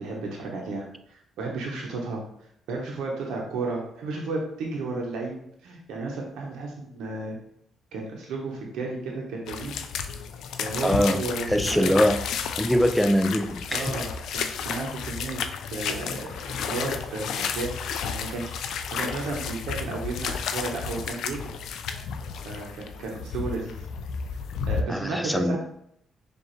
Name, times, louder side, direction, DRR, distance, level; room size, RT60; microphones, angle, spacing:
voice 1, 0.0-2.2 2.7-5.4 5.6-7.4 7.9-9.8 10.6-11.9 13.7-15.4 15.7-21.6 22.4-23.8 24.7-25.6, right 3 dB, 85° right, -1 dB, 0.8 m, -33 dB
sound 1, 9.5-24.8, left 6 dB, 80° left, 0.3 m, -32 dB
voice 2, 10.8-11.2 11.5-12.2 12.6-13.9 24.9-25.6, equal, 5° left, 6 dB, 0.4 m, -22 dB
4.7 x 2.5 x 3.1 m, 0.72 s
cardioid pair, 90°, 0 cm